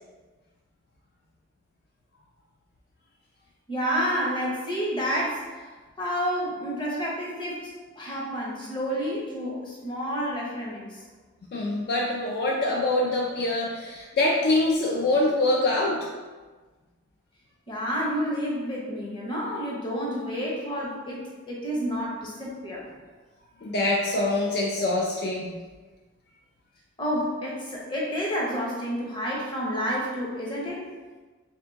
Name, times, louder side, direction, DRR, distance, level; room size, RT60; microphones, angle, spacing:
voice 1, 3.7-5.5 6.0-7.7 8.0-11.0 17.7-22.8 27.0-30.9, equal, 25° left, -4 dB, 0.8 m, -29 dB
voice 2, 11.5-16.1 23.6-25.6, left 2 dB, 55° left, -2 dB, 0.3 m, -24 dB
3.4 x 2.8 x 3.4 m, 1.3 s
head